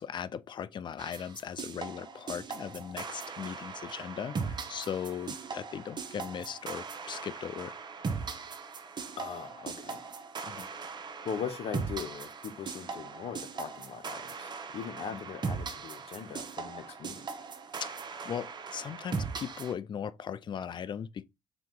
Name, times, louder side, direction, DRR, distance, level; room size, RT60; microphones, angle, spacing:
voice 1, 0.0-7.7 10.5-10.7 15.1-15.2 17.8-18.0 18.2-21.2, left 8 dB, 45° left, 0.4 m, -38 dB
sound 1, 1.0-19.7, right 5 dB, 40° right, 0.8 m, -39 dB
voice 2, 9.2-10.0 11.2-17.3, left 7 dB, 65° left, 0.8 m, -40 dB
3.6 x 2.9 x 3.6 m
supercardioid pair, 55°, 11 cm